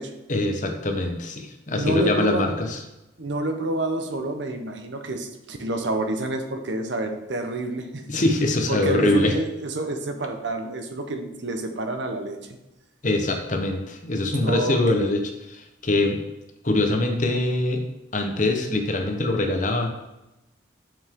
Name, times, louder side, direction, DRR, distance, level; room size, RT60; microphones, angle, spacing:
voice 1, 0.3-2.8 8.1-9.3 13.0-15.2 15.5-16.2 16.6-17.8 18.1-19.9, left 2 dB, 40° left, 4 dB, 0.9 m, -23 dB
voice 2, 1.7-2.6 3.2-8.2 8.7-12.4 14.4-15.1, right 1 dB, 70° right, 6 dB, 0.9 m, -28 dB
6.9 x 6.1 x 3.6 m, 0.96 s
head